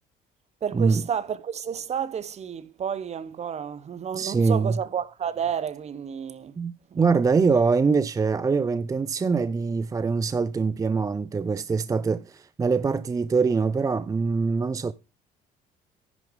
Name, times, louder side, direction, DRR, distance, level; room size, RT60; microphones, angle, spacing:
voice 1, 0.6-6.6 6.9-7.0, right 8 dB, 40° right, 0.9 m, -31 dB
voice 2, 4.1-4.8 6.6-14.9, right 4 dB, 20° right, 0.4 m, -23 dB
10.5 x 6.5 x 5.3 m
cardioid pair, 110°, 17 cm